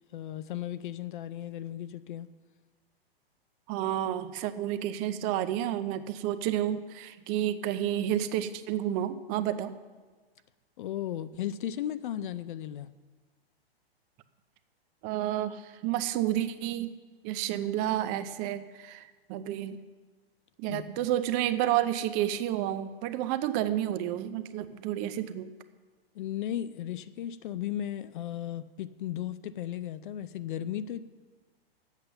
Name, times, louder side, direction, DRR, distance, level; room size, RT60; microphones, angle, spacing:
voice 1, 0.1-2.3 10.8-12.9 20.7-20.8 26.1-31.0, left 11 dB, 55° left, 15 dB, 0.5 m, -35 dB
voice 2, 3.7-9.8 15.0-16.9 17.2-19.8 20.6-25.5, right 12 dB, 25° right, 11 dB, 0.6 m, -30 dB
10.5 x 8.2 x 6.7 m, 1.4 s
hypercardioid pair, 135°, 30 cm